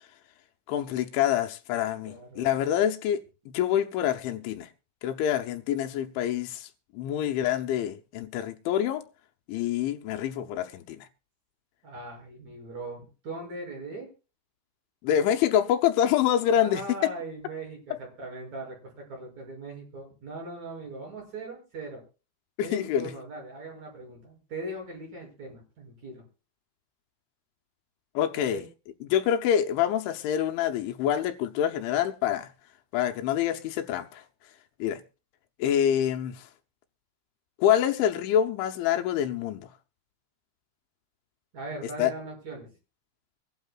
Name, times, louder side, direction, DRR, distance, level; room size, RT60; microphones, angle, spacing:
voice 1, 0.7-4.7 5.0-6.7 6.9-9.0 9.5-11.1 15.0-17.1 22.6-23.1 28.1-28.6 29.0-32.5 32.9-34.2 34.8-35.0 35.6-36.4 37.6-39.7 42.0-42.1, left 10 dB, 75° left, 3.0 m, -26 dB
voice 2, 2.1-2.6 11.8-14.1 16.5-22.0 22.6-26.2 28.3-28.7 41.5-42.7, right 2 dB, 35° right, 7.6 m, -40 dB
24.5 x 12.0 x 2.4 m
omnidirectional pair, 5.9 m